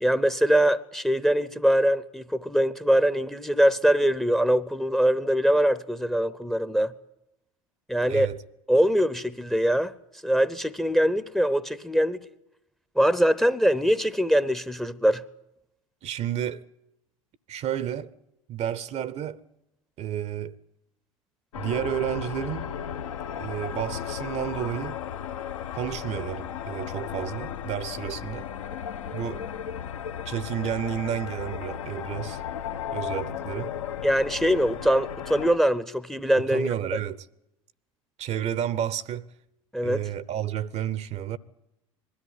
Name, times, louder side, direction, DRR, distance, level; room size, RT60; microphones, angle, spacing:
voice 1, 0.0-6.9 7.9-8.3 8.7-9.9 10.2-12.3 13.0-15.2 34.0-36.7 39.7-40.1, equal, ahead, 0.7 m, -23 dB
voice 2, 8.1-8.4 16.0-16.7 17.5-18.1 18.5-19.4 20.0-20.6 21.6-22.7 23.4-25.0 25.7-28.5 29.1-29.4 30.3-32.4 32.9-33.7 36.5-37.2 38.2-39.3 39.8-41.4, right 10 dB, 40° right, 0.7 m, -31 dB
sound 1, 21.5-35.6, left 8 dB, 70° left, 0.9 m, -35 dB
20.5 x 13.5 x 9.6 m
figure-of-eight pair, 70°, 18 cm